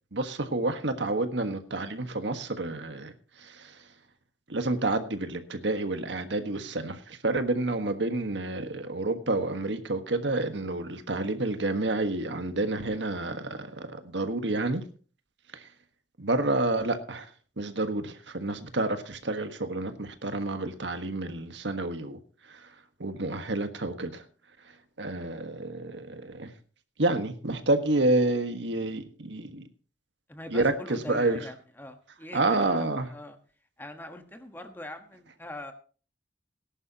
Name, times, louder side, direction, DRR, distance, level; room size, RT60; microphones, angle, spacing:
voice 1, 0.1-3.9 4.5-14.8 15.5-15.7 16.2-17.3 17.6-22.7 23.0-24.2 24.6-26.5 27.0-29.7 30.5-31.4 32.3-33.1, right 2 dB, 80° right, 1.5 m, -29 dB
voice 2, 30.3-33.4 33.8-35.7, left 1 dB, 10° left, 1.3 m, -42 dB
18.5 x 11.0 x 2.9 m
head